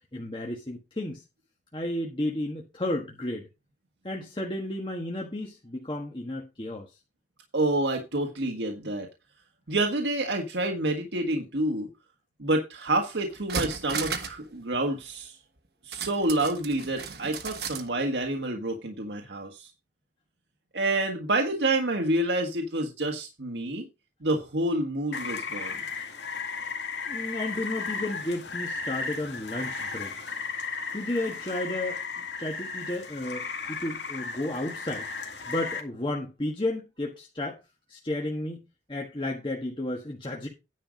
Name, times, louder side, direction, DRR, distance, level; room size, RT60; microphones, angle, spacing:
voice 1, 0.1-1.2 1.7-3.5 4.0-6.9 27.1-30.3 30.9-35.1 35.4-37.6 37.9-38.6 38.9-40.5, left 1 dB, 30° left, 1.4 m, -33 dB
voice 2, 7.5-9.1 9.7-11.9 12.4-15.4 15.8-19.7 20.7-23.9 24.2-25.8, right 2 dB, 85° right, 1.6 m, -28 dB
sound 1, 12.9-13.0 13.3-14.4 14.7-14.8 15.9-17.9 18.2-18.3, right 5 dB, 65° right, 1.3 m, -35 dB
Rain, 25.1-35.8, left 5 dB, 85° left, 2.1 m, -35 dB
10.0 x 5.7 x 5.1 m
head